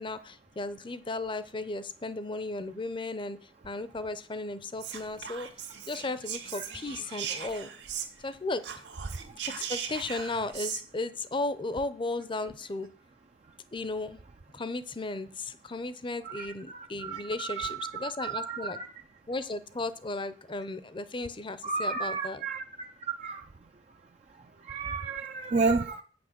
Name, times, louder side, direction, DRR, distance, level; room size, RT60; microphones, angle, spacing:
voice 1, 0.0-5.5 5.9-7.7 8.2-8.6 9.5-12.9 13.7-14.2 14.5-18.8 19.3-22.4 25.4-25.5, left 2 dB, 30° left, 14 dB, 0.7 m, -35 dB
Whispering, 4.8-8.3 8.6-10.8, right 8 dB, 80° right, 1.5 m, -39 dB
voice 2, 16.2-18.9 21.6-22.6 23.2-23.4 24.7-26.0, right 4 dB, 40° right, 5 dB, 0.5 m, -32 dB
8.6 x 6.1 x 6.6 m, 0.43 s
head